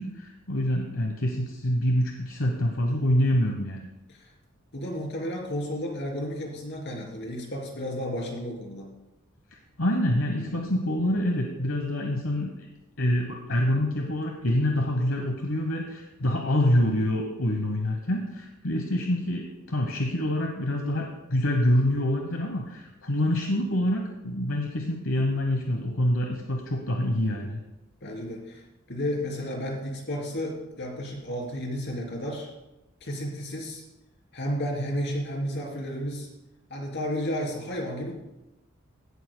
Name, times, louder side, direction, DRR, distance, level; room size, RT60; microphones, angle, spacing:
voice 1, 0.0-3.9 9.8-12.5 13.0-27.6, left 1 dB, 80° left, 2 dB, 1.1 m, -26 dB
voice 2, 4.7-8.9 10.4-10.5 28.0-28.6 28.9-32.5 33.0-33.8 34.3-36.3 36.7-38.1, equal, 60° left, -1 dB, 3.3 m, -32 dB
16.5 x 11.5 x 2.2 m, 0.98 s
head